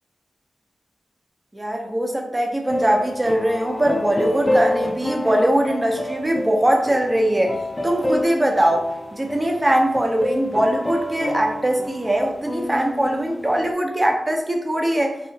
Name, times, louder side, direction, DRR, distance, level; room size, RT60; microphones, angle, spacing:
voice 1, 1.5-7.6 7.8-8.9 9.2-15.2, right 1 dB, 25° right, 2 dB, 0.6 m, -21 dB
sound 1, 2.7-13.7, left 1 dB, 30° left, 0.3 m, -28 dB
2.7 x 2.0 x 2.7 m, 0.88 s
cardioid pair, 45°, 0 cm